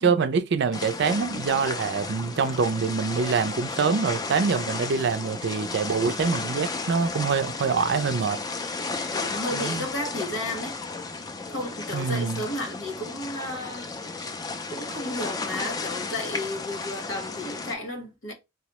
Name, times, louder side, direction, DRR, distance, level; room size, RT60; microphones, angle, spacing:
voice 1, 0.0-8.4 9.5-9.9 11.9-12.4, right 5 dB, 60° right, 0.4 m, -25 dB
sound 1, 0.7-17.7, left 3 dB, 20° left, 0.3 m, -33 dB
voice 2, 7.9-8.2 9.1-10.8 11.5-14.1 14.7-18.3, left 1 dB, 80° left, 1.0 m, -33 dB
4.1 x 2.0 x 2.9 m
head